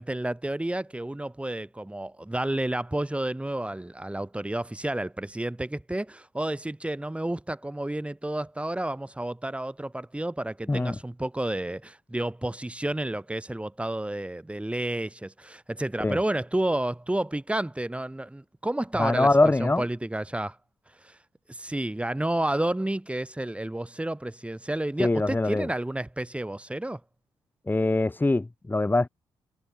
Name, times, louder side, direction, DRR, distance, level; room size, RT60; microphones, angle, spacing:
voice 1, 0.0-19.3 19.6-20.6 21.0-21.2 21.5-27.0, right 1 dB, 10° right, 6.9 m, -30 dB
voice 2, 19.0-19.8 25.0-25.7 27.7-29.1, left 2 dB, 20° left, 1.8 m, -23 dB
supercardioid pair, 55°, 10 cm